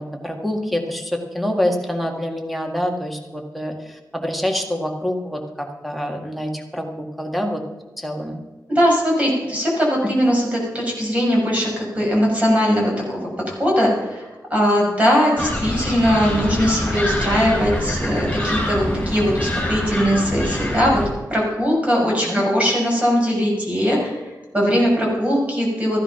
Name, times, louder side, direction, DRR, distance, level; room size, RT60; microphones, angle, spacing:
voice 1, 0.0-7.6 8.0-8.4 22.0-22.4, equal, ahead, 2 dB, 1.9 m, -26 dB
voice 2, 8.7-13.2 13.5-21.0 21.3-26.0, equal, 20° right, -3 dB, 6.3 m, -20 dB
sound 1, 15.4-21.1, left 1 dB, 20° left, 6.4 m, -25 dB
15.0 x 11.0 x 5.8 m, 1.2 s
wide cardioid pair, 135°, 7 cm